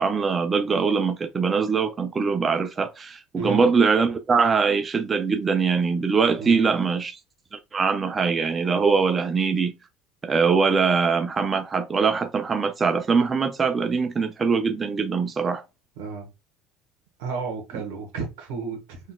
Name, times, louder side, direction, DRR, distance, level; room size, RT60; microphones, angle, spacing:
voice 1, 0.0-7.2 7.5-9.7 10.2-15.6, right 5 dB, 30° right, 0.4 m, -22 dB
voice 2, 3.4-3.7 6.4-6.7 16.0-16.3 17.2-19.0, right 4 dB, 85° right, 1.1 m, -32 dB
3.7 x 2.3 x 2.2 m
supercardioid pair, 95°, 0 cm